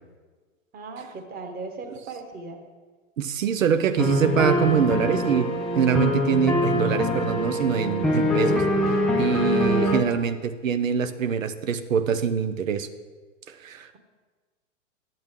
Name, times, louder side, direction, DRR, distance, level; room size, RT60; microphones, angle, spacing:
voice 1, 0.7-2.6 6.7-7.4 7.9-8.2 9.5-10.2, right 4 dB, 25° right, 4 dB, 1.3 m, -37 dB
voice 2, 3.2-5.5 5.7-12.9 13.5-13.9, right 7 dB, 75° right, 10 dB, 0.8 m, -24 dB
sound 1, 4.0-10.0, left 1 dB, ahead, 0.3 m, -24 dB
10.5 x 7.9 x 3.6 m, 1.4 s
hypercardioid pair, 110°, 39 cm